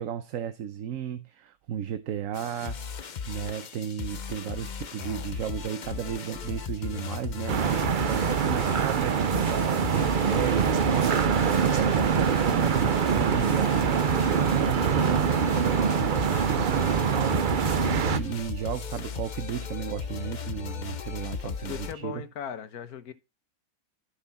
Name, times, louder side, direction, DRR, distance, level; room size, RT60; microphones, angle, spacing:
voice 1, 0.0-22.2, right 9 dB, 65° right, 1.1 m, -34 dB
sound 1, 2.3-21.9, left 7 dB, 45° left, 0.6 m, -36 dB
sound 2, 7.5-18.2, right 7 dB, 45° right, 0.7 m, -24 dB
voice 2, 21.4-23.1, left 7 dB, 90° left, 1.6 m, -38 dB
13.5 x 5.9 x 4.1 m
omnidirectional pair, 1.5 m